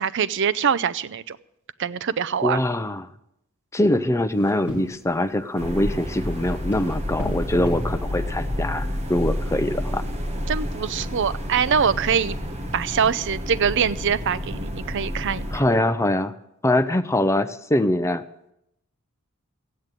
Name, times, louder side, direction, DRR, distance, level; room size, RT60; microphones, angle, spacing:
voice 1, 0.0-1.4 1.8-2.6 10.5-12.4 12.7-15.6, right 7 dB, 55° right, 16 dB, 0.5 m, -23 dB
voice 2, 2.4-3.1 3.7-10.0 15.5-16.3 16.6-18.2, left 1 dB, 15° left, 10 dB, 0.6 m, -23 dB
sound 1, 4.3-11.9, equal, 10° right, 6.3 m, -42 dB
sound 2, 5.6-15.6, equal, 30° right, 1.4 m, -30 dB
15.5 x 8.3 x 9.1 m, 0.80 s
head